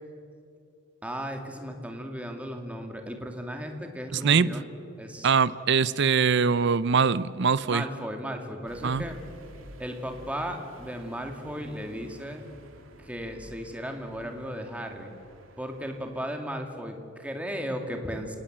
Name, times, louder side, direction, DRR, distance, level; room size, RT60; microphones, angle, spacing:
voice 1, 1.0-4.6 5.0-5.3 7.7-9.2 9.8-12.4 13.0-15.1 15.6-18.4, equal, 5° right, 3 dB, 2.3 m, -35 dB
voice 2, 4.1-4.5 5.2-7.8 8.8-9.0, right 5 dB, 60° right, 17 dB, 0.6 m, -22 dB
sound 1, 8.6-16.4, right 1 dB, 85° right, 2.3 m, -50 dB
28.5 x 19.0 x 7.6 m, 2.6 s
head